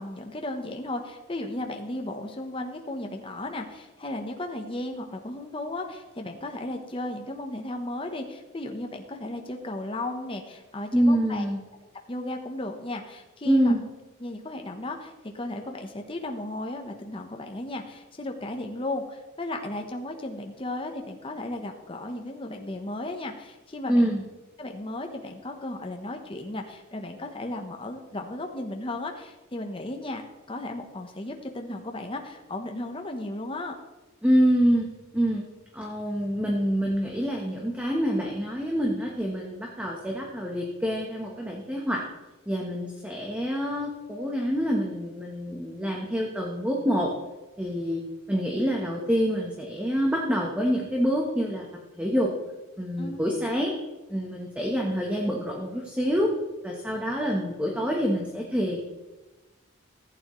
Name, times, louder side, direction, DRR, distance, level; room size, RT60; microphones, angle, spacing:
voice 1, 0.0-11.5 12.1-13.8 14.2-24.1 24.6-30.2 30.5-33.7 53.0-53.2, left 1 dB, 25° left, 3 dB, 0.9 m, -35 dB
voice 2, 10.9-11.6 13.4-13.8 23.9-24.2 34.2-35.5 35.7-42.0 42.5-47.1 47.6-48.0 48.3-51.7 52.0-52.3 52.8-53.7 54.1-56.3 56.6-58.8, equal, 5° right, -1 dB, 1.0 m, -26 dB
15.0 x 9.0 x 3.1 m, 1.1 s
head